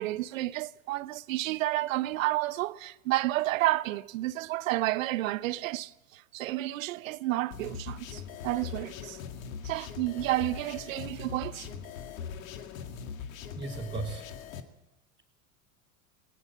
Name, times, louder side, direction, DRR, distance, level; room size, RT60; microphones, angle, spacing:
voice 1, 0.0-9.2 9.6-11.8, right 17 dB, 70° right, 0.9 m, -31 dB
sound 1, 7.5-14.6, left 7 dB, 70° left, 2.2 m, -41 dB
voice 2, 12.9-14.5, right 4 dB, 10° right, 3.4 m, -39 dB
19.5 x 19.5 x 7.7 m
hypercardioid pair, 90°, 41 cm